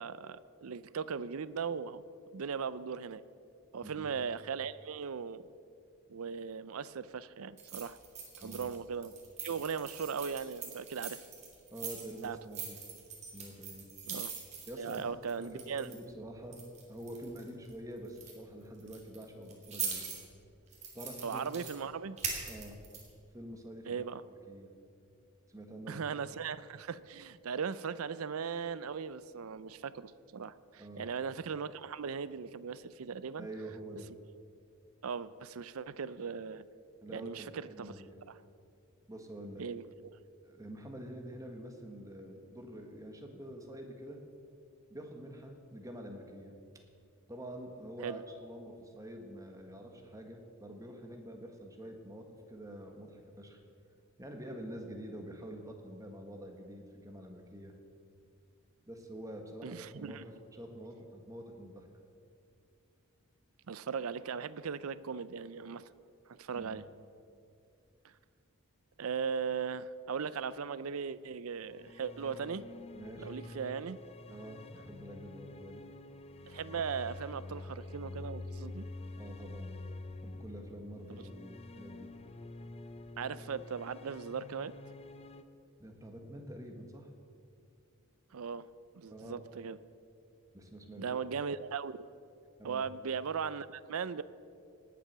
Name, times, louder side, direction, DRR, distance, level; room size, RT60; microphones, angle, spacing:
voice 1, 0.0-2.0 2.3-3.2 3.7-5.4 6.1-8.0 8.4-9.1 9.4-11.2 12.2-12.4 14.1-14.3 14.8-15.9 21.2-22.2 23.9-24.2 25.9-33.5 35.0-36.6 37.1-37.9 39.6-39.8 48.0-48.2 59.6-60.2 63.7-65.9 66.3-66.8 69.0-72.6 73.2-74.0 76.5-78.9 83.2-84.7 88.3-88.6 88.9-89.8 91.0-91.9 92.6-94.2, right 6 dB, 70° right, 16 dB, 0.5 m, -38 dB
voice 2, 3.8-4.2 8.4-8.7 11.7-12.8 13.3-13.9 14.7-20.0 20.9-21.5 22.5-22.8 23.3-24.0 24.5-24.7 25.5-26.2 30.8-31.1 33.4-34.1 37.0-38.2 39.1-39.6 40.4-44.2 44.9-46.5 47.3-53.6 54.2-57.7 58.9-61.9 66.5-66.8 72.9-73.3 74.3-75.8 79.1-79.7 80.2-82.1 85.8-87.1 89.1-89.4 90.5-91.2 92.6-92.9, right 1 dB, 15° right, 3 dB, 1.5 m, -47 dB
sound 1, 7.6-8.8 9.0-16.1 16.5-17.7 18.0-18.3 18.8-20.2 20.7-21.7 22.2-23.1, right 6 dB, 30° right, 2.8 m, -42 dB
sound 2, 71.6-85.4, left 2 dB, 30° left, 0.5 m, -47 dB
18.5 x 7.5 x 6.7 m, 2.5 s
head